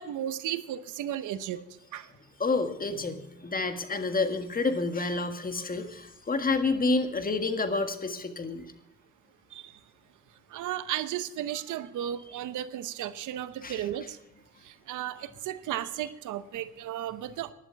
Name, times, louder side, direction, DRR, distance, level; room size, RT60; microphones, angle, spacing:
voice 1, 0.0-1.6 1.9-2.1 9.5-9.7 10.5-14.2 14.6-17.5, right 11 dB, 80° right, 14 dB, 0.9 m, -34 dB
voice 2, 2.4-8.7 13.6-13.8, left 3 dB, 30° left, 8 dB, 1.7 m, -29 dB
11.5 x 11.0 x 5.8 m, 0.88 s
cardioid pair, 90°, 30 cm